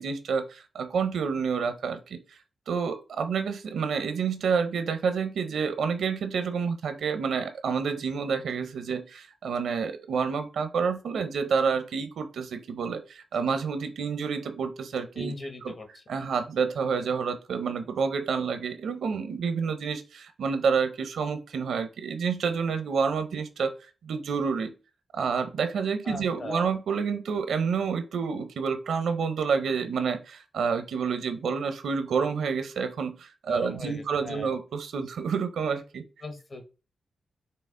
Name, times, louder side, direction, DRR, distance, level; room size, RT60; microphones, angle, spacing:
voice 1, 0.0-2.4 2.7-15.3 15.6-15.7 16.1-23.7 24.0-24.7 25.1-36.0, right 5 dB, 85° right, 9 dB, 0.6 m, -29 dB
voice 2, 15.2-16.0 26.0-26.7 33.5-34.5 36.2-36.6, left 2 dB, 50° left, 6 dB, 1.1 m, -38 dB
5.7 x 2.0 x 3.7 m, 0.32 s
cardioid pair, 80°, 0 cm